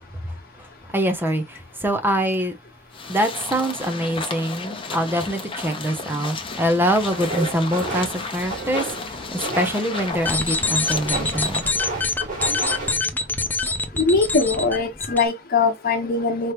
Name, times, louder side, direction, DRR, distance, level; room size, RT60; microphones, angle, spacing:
voice 1, 0.1-2.6 3.0-11.6, equal, 10° right, 0.8 m, -24 dB
sound 1, 2.9-11.7, left 4 dB, 25° left, 1.0 m, -33 dB
sound 2, 7.1-12.9, right 2 dB, 45° right, 3.1 m, -31 dB
sound 3, 10.1-15.2, left 3 dB, 10° left, 0.5 m, -25 dB
voice 2, 14.0-16.5, left 4 dB, 50° left, 1.3 m, -21 dB
4.6 x 3.2 x 3.0 m
head